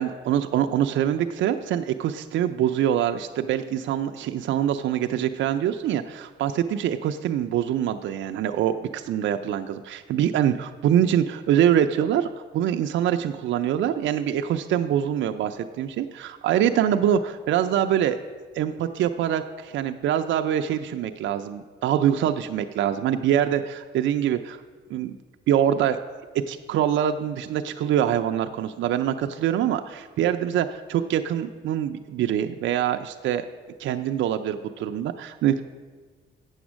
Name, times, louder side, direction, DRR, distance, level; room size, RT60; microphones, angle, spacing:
voice 1, 0.0-18.2 18.5-24.6 24.9-25.2 25.5-26.0 26.3-33.5 33.8-35.6, right 10 dB, 70° right, 6 dB, 0.5 m, -24 dB
8.0 x 7.1 x 6.2 m, 1.4 s
cardioid pair, 90°, 20 cm